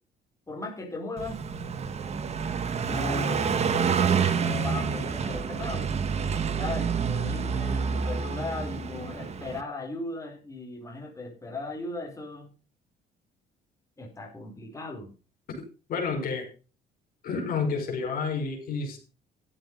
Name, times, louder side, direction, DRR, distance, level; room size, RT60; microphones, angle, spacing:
voice 1, 0.5-1.4 2.8-3.6 4.3-5.9 6.5-12.5 14.0-15.1, left 3 dB, 20° left, 0 dB, 4.5 m, -37 dB
Car passing by, 1.2-9.6, right 6 dB, 40° right, 1.5 m, -28 dB
voice 2, 15.9-16.5 17.2-19.0, left 5 dB, 60° left, 2 dB, 5.4 m, -29 dB
13.0 x 7.9 x 5.4 m, 0.34 s
cardioid pair, 110°, 17 cm